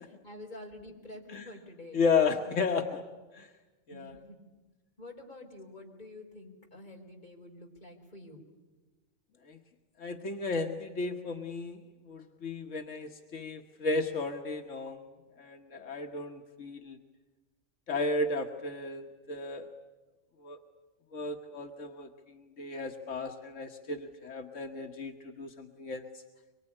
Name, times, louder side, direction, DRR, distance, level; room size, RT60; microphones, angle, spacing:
voice 1, 0.1-2.0 2.3-2.5 3.9-4.4 5.0-8.4, left 1 dB, 40° left, 1 dB, 4.7 m, -48 dB
voice 2, 1.9-3.0 3.3-3.5 3.9-4.1 9.5-9.6 10.0-11.8 12.1-15.1 15.4-17.0 17.9-19.7 20.4-20.6 21.1-22.1 22.6-26.0, left 4 dB, 85° left, 3 dB, 1.7 m, -33 dB
24.5 x 23.5 x 10.0 m, 1.2 s
omnidirectional pair, 1.3 m